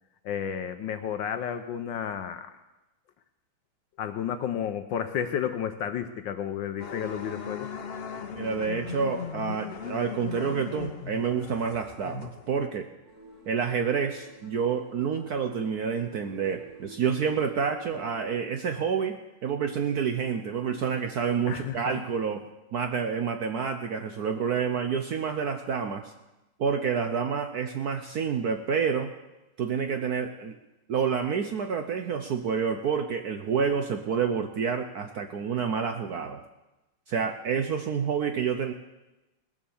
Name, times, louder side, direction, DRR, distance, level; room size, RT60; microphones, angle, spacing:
voice 1, 0.2-2.5 4.0-7.7 21.5-21.8, left 8 dB, 70° left, 9 dB, 1.2 m, -32 dB
Interior Rally Racing Car, 6.8-12.7, left 6 dB, 85° left, 0.5 m, -38 dB
voice 2, 8.4-12.9 13.5-22.4 22.7-26.1 26.6-29.1 29.6-30.5 30.9-36.4 37.1-38.7, right 6 dB, 65° right, 6 dB, 1.0 m, -28 dB
sound 1, 13.1-18.3, right 3 dB, 90° right, 4.2 m, -50 dB
19.0 x 7.4 x 7.0 m, 1.0 s
omnidirectional pair, 2.4 m